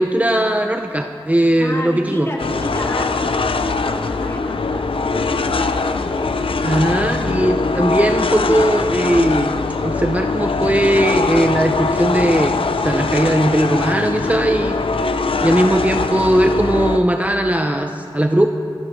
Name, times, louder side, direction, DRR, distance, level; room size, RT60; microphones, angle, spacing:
voice 1, 0.0-2.3 6.6-9.5 9.8-14.8 15.4-18.5, right 1 dB, 15° right, 5 dB, 0.7 m, -18 dB
voice 2, 1.6-6.3, left 1 dB, 30° left, -2 dB, 2.7 m, -32 dB
sound 1, 2.4-17.0, left 3 dB, 85° left, 0.5 m, -21 dB
25.5 x 11.5 x 3.2 m, 2.5 s
wide cardioid pair, 40°, 9 cm